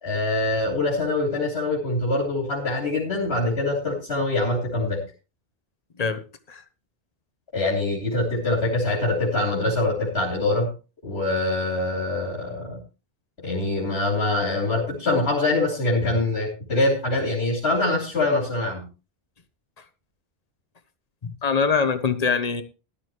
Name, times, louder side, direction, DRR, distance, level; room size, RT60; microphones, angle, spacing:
voice 1, 0.0-5.0 7.5-10.7 11.0-12.8 13.4-18.8, left 2 dB, 85° left, 3.3 m, -24 dB
voice 2, 21.2-22.6, left 5 dB, 40° left, 1.1 m, -23 dB
14.0 x 12.0 x 3.1 m
omnidirectional pair, 1.1 m